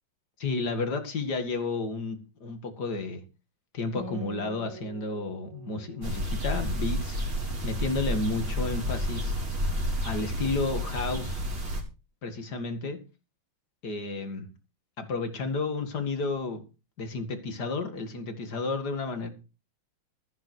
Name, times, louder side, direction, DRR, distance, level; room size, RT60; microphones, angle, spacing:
voice 1, 0.4-3.2 3.7-7.3 7.6-9.3 10.0-11.4 12.2-13.0 13.8-14.5 15.0-16.6 17.0-19.3, left 3 dB, 50° left, 2.6 m, -32 dB
Acoustic guitar, 3.9-7.7, equal, 15° left, 2.8 m, -45 dB
sound 1, 6.0-11.8, equal, 50° right, 4.5 m, -30 dB
14.0 x 11.0 x 4.6 m
omnidirectional pair, 2.3 m